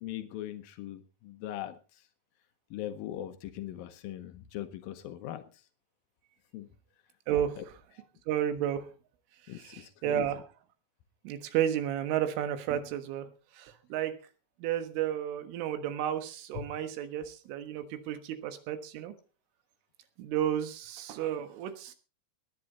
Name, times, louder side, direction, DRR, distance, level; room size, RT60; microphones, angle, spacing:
voice 1, 0.0-2.0 2.7-5.4 6.5-6.7 7.6-7.7 9.5-10.4 16.6-16.7, left 12 dB, 85° left, 9 dB, 2.0 m, -40 dB
voice 2, 7.3-7.6 8.3-8.9 9.5-10.4 11.3-13.3 13.6-14.2 14.6-19.1 20.2-21.9, right 10 dB, 85° right, 9 dB, 3.9 m, -32 dB
19.5 x 9.9 x 4.1 m, 0.34 s
omnidirectional pair, 5.5 m